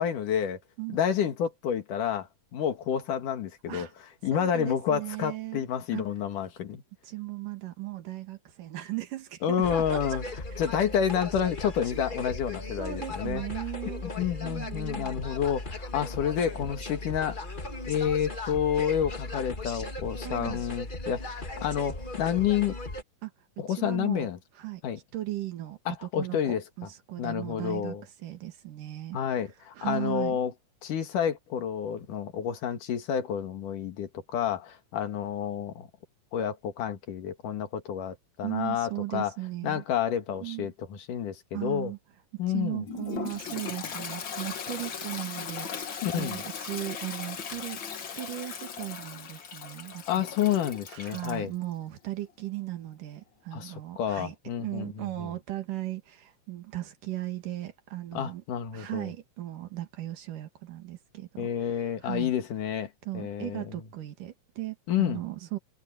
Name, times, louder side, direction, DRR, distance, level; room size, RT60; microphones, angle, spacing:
voice 1, 0.0-0.6 0.9-3.9 4.2-6.8 9.4-10.2 10.6-13.4 13.9-17.4 17.9-22.8 23.6-24.4 24.8-25.0 25.9-26.6 27.2-28.0 29.1-30.5 30.8-35.9 36.3-39.3 39.6-41.9 42.4-42.9 46.0-46.4 50.1-51.5 53.5-55.3 58.1-59.1 61.4-63.7 64.9-65.2, left 9 dB, 75° left, 3.4 m, -29 dB
voice 2, 4.3-5.7 5.9-6.0 7.0-10.2 11.9-12.1 12.8-14.0 14.4-15.2 20.2-20.6 23.2-23.3 23.7-24.3 24.6-24.8 25.1-28.0 28.2-29.2 29.7-30.4 38.4-39.8 40.4-40.7 41.5-42.0 42.5-50.2 50.9-58.4 58.7-61.5 62.0-62.3 63.0-65.6, right 16 dB, 80° right, 3.4 m, -37 dB
sound 1, 9.6-23.0, left 2 dB, 25° left, 1.2 m, -37 dB
Toilet flush, 42.9-51.4, left 6 dB, 45° left, 1.9 m, -38 dB
omnidirectional pair, 3.7 m